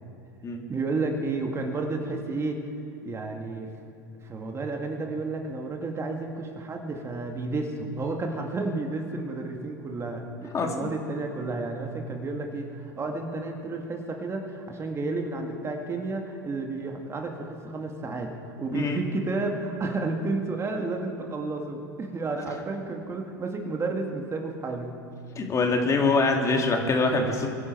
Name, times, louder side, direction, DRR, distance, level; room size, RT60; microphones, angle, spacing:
voice 1, 0.7-2.6 3.0-3.7 4.2-18.3 18.6-24.9, right 3 dB, 25° right, 3 dB, 1.9 m, -31 dB
voice 2, 10.5-10.9 18.7-19.0 25.4-27.5, left 3 dB, 30° left, 3 dB, 2.2 m, -24 dB
23.5 x 11.0 x 4.6 m, 2.8 s
hypercardioid pair, 90°, 11 cm